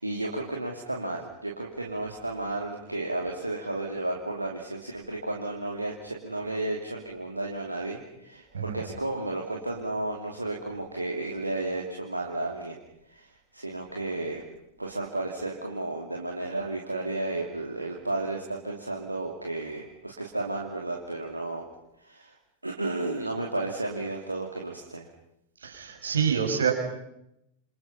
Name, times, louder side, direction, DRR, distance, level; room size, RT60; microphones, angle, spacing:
voice 1, 0.0-12.8 13.1-13.3 13.5-14.4 14.8-21.7 22.0-22.3 22.6-25.1, right 2 dB, 85° right, 0 dB, 2.8 m, -33 dB
voice 2, 25.6-26.7, right 7 dB, 70° right, 4 dB, 5.9 m, -26 dB
28.5 x 27.5 x 5.8 m, 0.81 s
figure-of-eight pair, 90°, 0 cm